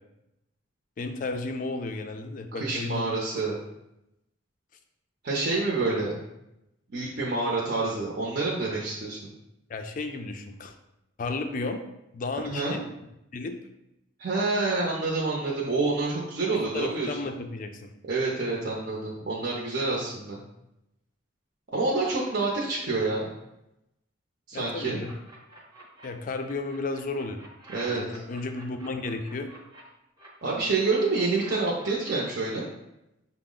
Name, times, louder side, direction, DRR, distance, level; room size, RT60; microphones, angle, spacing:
voice 1, 1.0-3.1 9.7-10.7 11.2-11.8 12.1-12.8 13.3-13.6 16.5-17.9 24.5-25.1 26.0-27.4 27.9-29.5, left 3 dB, 45° left, 6 dB, 0.4 m, -33 dB
voice 2, 2.5-3.6 5.2-6.2 6.9-9.2 12.5-12.7 14.2-17.1 18.1-20.4 21.7-23.3 24.5-25.0 27.7-28.0 30.4-32.7, right 3 dB, 55° right, -3 dB, 0.6 m, -27 dB
sound 1, 24.8-26.1 26.4-29.8 30.2-32.2, right 1 dB, 20° right, 0.7 m, -48 dB
5.7 x 2.0 x 3.7 m, 0.88 s
head